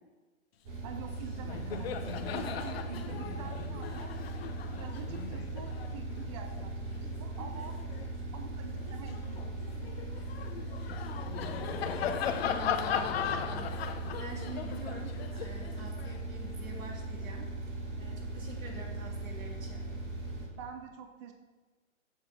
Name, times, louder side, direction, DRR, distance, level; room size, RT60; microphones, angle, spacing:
sound 1, 0.6-20.5, right 2 dB, 45° right, 3.3 m, -39 dB
voice 1, 0.8-4.1 4.7-7.8 8.3-9.4 20.6-21.3, right 7 dB, 25° right, 5 dB, 0.6 m, -46 dB
Laughter, 1.0-1.1 1.4-8.1 8.6-16.8, left 8 dB, 45° left, 0.8 m, -38 dB
voice 2, 12.4-13.7 14.2-19.9, right 3 dB, 75° right, -1 dB, 3.4 m, -47 dB
8.7 x 7.2 x 6.1 m, 1.3 s
hypercardioid pair, 145°, 41 cm